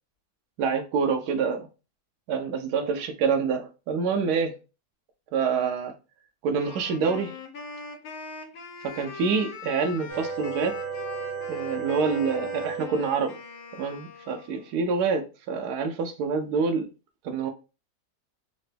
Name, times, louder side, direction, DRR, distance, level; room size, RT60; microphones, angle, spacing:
voice 1, 0.6-1.7 2.3-4.5 5.3-5.9 6.4-7.3 8.9-10.7 11.5-13.4 13.8-15.2 15.5-16.8 17.2-17.5, right 5 dB, 85° right, 1.1 m, -26 dB
Wind instrument woodwind instrument, 6.6-14.8, left 4 dB, 75° left, 1.2 m, -42 dB
sound 1, 10.1-13.4, right 5 dB, 70° right, 1.5 m, -34 dB
3.8 x 2.1 x 3.3 m
omnidirectional pair, 1.6 m